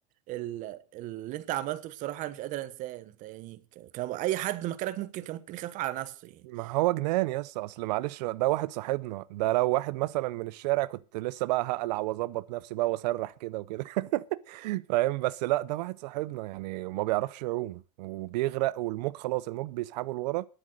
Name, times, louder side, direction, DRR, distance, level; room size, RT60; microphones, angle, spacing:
voice 1, 0.3-6.4, right 15 dB, 40° right, 0.9 m, -35 dB
voice 2, 6.5-20.5, right 18 dB, 85° right, 0.5 m, -30 dB
10.5 x 7.9 x 7.7 m
cardioid pair, 170°, 21 cm